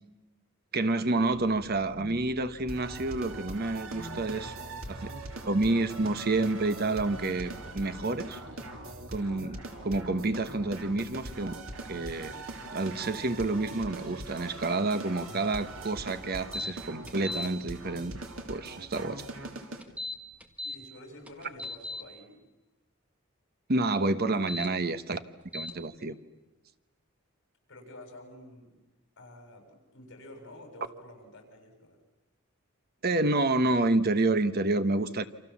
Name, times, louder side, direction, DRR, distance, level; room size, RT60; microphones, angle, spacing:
voice 1, 0.7-4.5 4.9-5.1 5.5-8.4 9.1-11.5 11.9-12.3 12.7-18.1 18.5-19.2 23.7-25.2 25.5-26.1 33.0-35.2, right 2 dB, 50° right, 11 dB, 1.2 m, -29 dB
sound 1, 1.1-13.6, equal, 30° left, 2.0 m, -50 dB
sound 2, 2.7-19.8, right 2 dB, 85° right, 3.1 m, -42 dB
sound 3, 16.5-16.7 17.1-17.5 19.8-20.8 21.3-22.0 24.3-24.7 25.5-25.7, left 2 dB, 5° right, 1.9 m, -36 dB
voice 2, 20.6-22.4 27.7-28.7 29.2-29.6 29.9-32.0, left 1 dB, 60° left, 3 dB, 7.3 m, -49 dB
28.5 x 27.0 x 7.3 m, 1.1 s
head